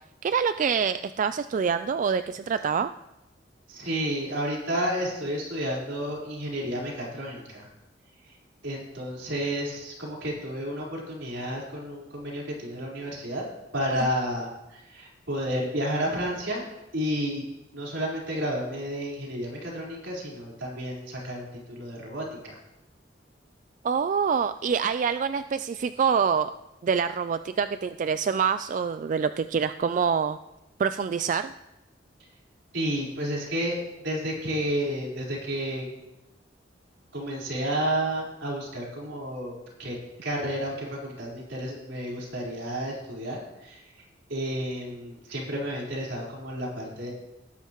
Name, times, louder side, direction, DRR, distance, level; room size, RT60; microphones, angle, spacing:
voice 1, 0.2-2.9 14.0-14.1 23.8-26.5 26.8-30.4 30.8-31.5, right 6 dB, 45° right, 11 dB, 0.3 m, -26 dB
voice 2, 3.7-7.7 8.3-8.4 8.6-13.4 13.7-16.7 16.9-17.4 17.7-22.6 32.7-35.8 37.1-40.0 40.2-43.9 44.3-47.1, equal, 80° right, -3 dB, 4.3 m, -31 dB
18.5 x 10.0 x 3.0 m, 0.96 s
head